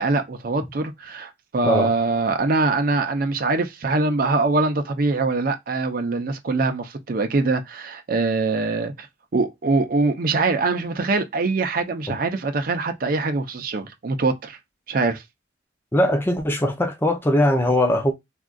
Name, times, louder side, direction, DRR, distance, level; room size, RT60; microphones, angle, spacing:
voice 1, 0.0-9.1 9.3-14.6 14.9-15.2, right 3 dB, 50° right, 0.5 m, -23 dB
voice 2, 1.6-2.0 12.1-12.2 15.9-18.1, left 1 dB, 10° left, 0.6 m, -20 dB
3.5 x 2.3 x 2.3 m
head